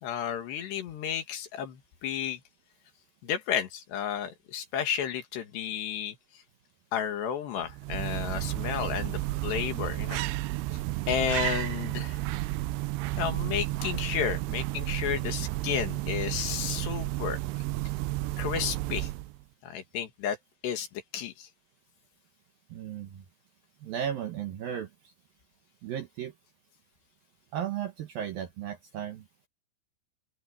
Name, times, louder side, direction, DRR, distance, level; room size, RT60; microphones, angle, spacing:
voice 1, 0.0-2.4 3.2-6.2 6.9-10.2 11.1-12.2 13.2-17.4 18.4-19.1 19.6-20.4 20.6-20.9 21.1-21.5, left 8 dB, 65° left, 3.9 m, -32 dB
sound 1, 7.6-19.4, right 18 dB, 85° right, 2.5 m, -32 dB
voice 2, 22.7-23.3 23.8-25.1 25.8-26.3 27.5-29.3, right 9 dB, 70° right, 2.3 m, -35 dB
open air
omnidirectional pair, 5.6 m